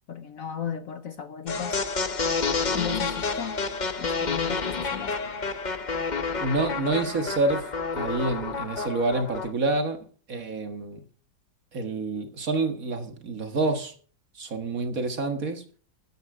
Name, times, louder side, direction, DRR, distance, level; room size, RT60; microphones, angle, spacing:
voice 1, 0.1-1.8 2.7-3.6 4.0-5.2, left 8 dB, 55° left, 1.0 m, -35 dB
sound 1, 1.5-9.5, left 4 dB, 40° left, 0.6 m, -29 dB
voice 2, 6.4-11.0 11.7-13.9 14.4-15.6, right 2 dB, 50° right, 1.9 m, -28 dB
13.0 x 9.3 x 4.8 m
omnidirectional pair, 2.0 m